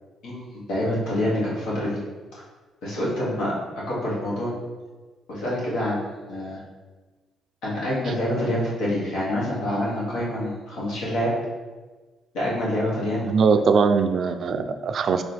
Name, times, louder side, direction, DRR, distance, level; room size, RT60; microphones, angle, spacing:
voice 1, 0.2-2.0 2.8-3.5 3.9-4.5 5.3-6.0 6.3-6.6 7.6-11.3 12.3-13.5, left 1 dB, 85° left, -6 dB, 1.4 m, -26 dB
voice 2, 13.2-15.2, right 5 dB, 60° right, 8 dB, 0.3 m, -21 dB
3.7 x 3.2 x 3.4 m, 1.3 s
supercardioid pair, 70°, 0 cm